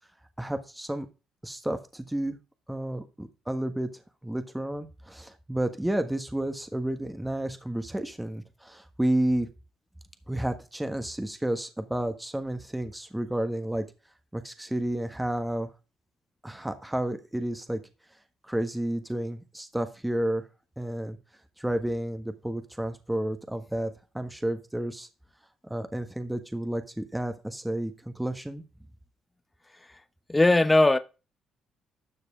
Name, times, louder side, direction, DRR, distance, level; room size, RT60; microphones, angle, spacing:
voice 1, 0.4-1.1 1.4-2.4 2.7-3.9 4.2-9.5 10.3-13.9 14.3-15.7 16.4-17.8 18.5-20.4 20.8-21.2 21.6-25.1 25.6-28.6, right 1 dB, 10° right, 1.4 m, -31 dB
voice 2, 30.3-31.0, left 2 dB, 20° left, 0.8 m, -19 dB
12.5 x 6.5 x 3.7 m
hypercardioid pair, 55°, 0 cm